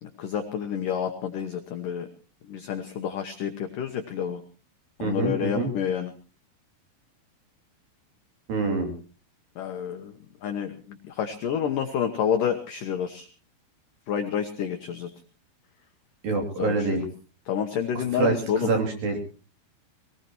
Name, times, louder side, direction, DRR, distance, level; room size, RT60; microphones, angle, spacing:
voice 1, 0.0-2.1 2.5-4.4 5.0-6.1 9.6-10.1 10.4-13.3 14.1-15.1 16.6-17.1 17.5-18.7, left 8 dB, 80° left, 5 dB, 1.9 m, -29 dB
voice 2, 5.0-5.7 8.5-8.9 16.2-17.0 17.9-19.2, right 3 dB, 50° right, 3 dB, 4.3 m, -26 dB
23.5 x 18.0 x 3.0 m, 0.36 s
omnidirectional pair, 5.5 m